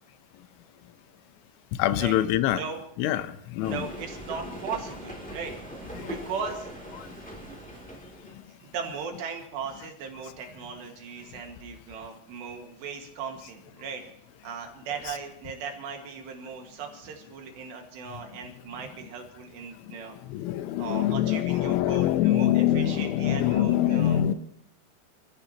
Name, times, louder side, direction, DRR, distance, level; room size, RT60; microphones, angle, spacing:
voice 1, 1.8-2.6 3.0-3.3 3.5-3.9 6.0-6.1 20.3-24.3, left 12 dB, 85° left, 13 dB, 3.1 m, -24 dB
voice 2, 2.5-2.8 3.6-6.8 8.6-14.0 14.4-20.2 20.8-24.2, right 6 dB, 70° right, 3 dB, 3.8 m, -38 dB
sound 1, 3.6-8.5, equal, 5° left, 0.9 m, -40 dB
27.0 x 15.0 x 2.9 m, 0.74 s
omnidirectional pair, 5.4 m